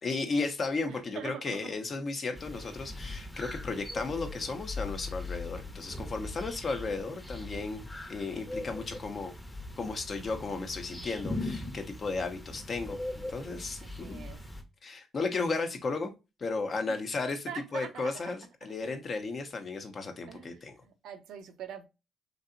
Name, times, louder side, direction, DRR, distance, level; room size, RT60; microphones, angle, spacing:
voice 1, 0.0-9.3 9.8-14.2 14.8-16.1 16.4-20.8, left 3 dB, 50° left, 0.9 m, -34 dB
voice 2, 0.9-1.8 13.8-14.4 17.5-18.1 20.3-21.8, right 8 dB, 80° right, 0.6 m, -43 dB
sound 1, 2.3-14.6, left 2 dB, 10° left, 0.9 m, -40 dB
3.1 x 2.8 x 2.6 m
supercardioid pair, 65°, 0 cm